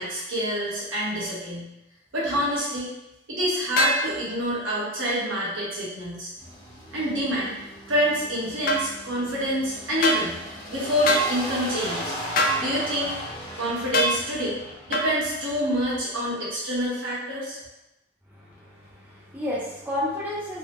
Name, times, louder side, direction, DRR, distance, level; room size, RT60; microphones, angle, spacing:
voice 1, 0.0-1.7 2.1-2.9 3.3-6.3 6.9-7.5 7.9-10.4 10.7-12.1 12.6-13.1 13.6-14.6 14.9-17.6, equal, 80° right, -7 dB, 1.1 m, -27 dB
sound 1, 3.8-4.0 8.7-8.8 10.0-10.2 11.1-11.3 12.4-12.6 13.9-14.2 14.9-15.1, equal, 45° left, 0.4 m, -21 dB
sound 2, 6.4-16.0, equal, 25° left, 0.7 m, -37 dB
voice 2, 18.3-20.6, left 1 dB, 10° right, -7 dB, 0.5 m, -32 dB
3.7 x 2.1 x 2.9 m, 0.91 s
head